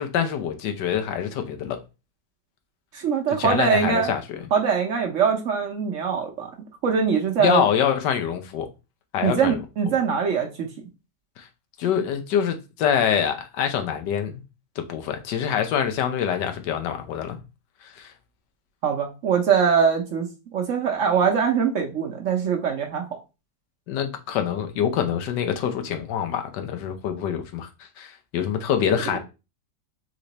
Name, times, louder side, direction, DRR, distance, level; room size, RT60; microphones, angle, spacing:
voice 1, 0.0-1.8 3.4-4.4 7.4-8.7 9.1-9.6 11.4-11.5 11.8-14.4 14.8-17.4 17.8-18.1 23.9-27.7 28.0-29.2, left 8 dB, 90° left, 1.4 m, -25 dB
voice 2, 2.9-4.1 4.5-6.5 6.8-7.6 9.2-10.7 18.8-23.2, right 7 dB, 60° right, 0.9 m, -22 dB
3.8 x 3.3 x 4.0 m
omnidirectional pair, 1.8 m